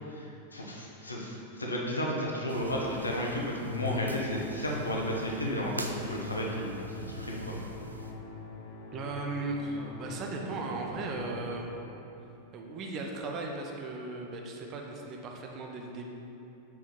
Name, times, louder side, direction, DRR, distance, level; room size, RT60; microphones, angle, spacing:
voice 1, 0.1-7.6, equal, 80° left, -2 dB, 0.9 m, -33 dB
sound 1, 2.5-8.1, right 2 dB, 80° right, 0.4 m, -44 dB
Musical instrument, 3.6-12.1, left 5 dB, 45° left, 0.8 m, -43 dB
voice 2, 8.9-11.7 12.5-16.1, right 3 dB, 35° right, 1 dB, 0.8 m, -37 dB
5.8 x 4.5 x 4.5 m, 2.9 s
figure-of-eight pair, 90°, 0 cm